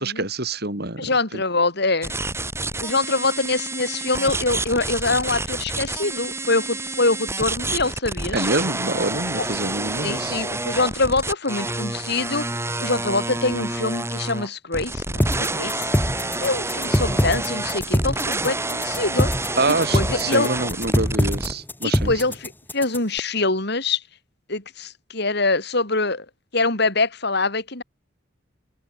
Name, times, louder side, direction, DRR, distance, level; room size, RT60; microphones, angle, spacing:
voice 1, 0.0-1.4 8.3-10.4 19.6-22.1, right 2 dB, 55° right, 6.0 m, -26 dB
voice 2, 1.0-2.1 2.8-8.5 9.4-9.5 10.0-12.5 12.8-15.9 16.4-19.3 19.9-20.5 21.8-24.0 24.5-26.3 26.5-27.8, left 3 dB, 60° left, 4.4 m, -24 dB
sound 1, 2.0-21.5, right 2 dB, 15° right, 6.4 m, -29 dB
sound 2, 15.2-23.2, equal, 10° left, 2.1 m, -23 dB
open air
head